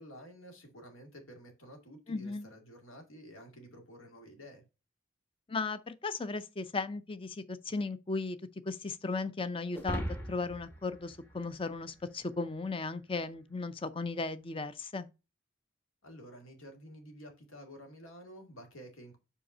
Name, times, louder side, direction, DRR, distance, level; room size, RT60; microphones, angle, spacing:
voice 1, 0.0-4.6 16.0-19.2, equal, 85° left, 2.2 m, -51 dB
voice 2, 2.1-2.5 5.5-8.4 8.7-10.0 10.3-15.1, left 3 dB, 25° left, 0.5 m, -36 dB
sound 1, 9.7-12.3, equal, 10° left, 1.0 m, -40 dB
5.3 x 4.9 x 5.4 m
head